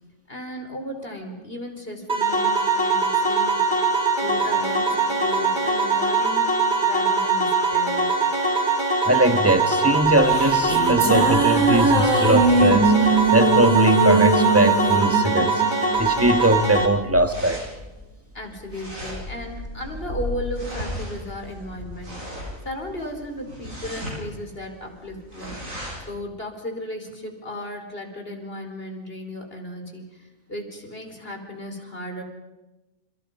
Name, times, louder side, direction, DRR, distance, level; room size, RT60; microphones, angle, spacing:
voice 1, 0.3-3.9 4.2-8.2 18.3-22.4 22.6-25.7 26.1-32.2, left 1 dB, 45° left, 4 dB, 4.6 m, -35 dB
sound 1, 2.1-16.9, right 3 dB, 35° right, 3.6 m, -22 dB
voice 2, 9.0-17.6, right 1 dB, 10° right, 9 dB, 1.6 m, -21 dB
sound 2, 10.0-16.6, right 3 dB, 70° right, 3.6 m, -21 dB
sound 3, 15.9-26.1, left 1 dB, 90° right, 8.2 m, -36 dB
29.5 x 29.0 x 5.5 m, 1.1 s
omnidirectional pair, 1.4 m